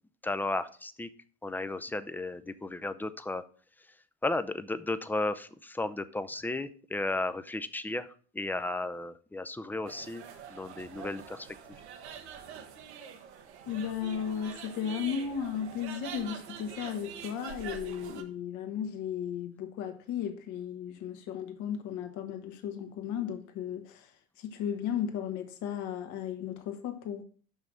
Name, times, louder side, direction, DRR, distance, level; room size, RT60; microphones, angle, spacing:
voice 1, 0.2-1.1 1.4-3.4 4.2-8.1 8.3-10.2 10.5-11.5, left 2 dB, 5° left, 0.5 m, -34 dB
sound 1, 9.8-18.2, right 8 dB, 85° right, 1.1 m, -45 dB
voice 2, 13.7-27.2, left 8 dB, 60° left, 1.4 m, -35 dB
6.0 x 5.5 x 6.3 m
hypercardioid pair, 85°, 32 cm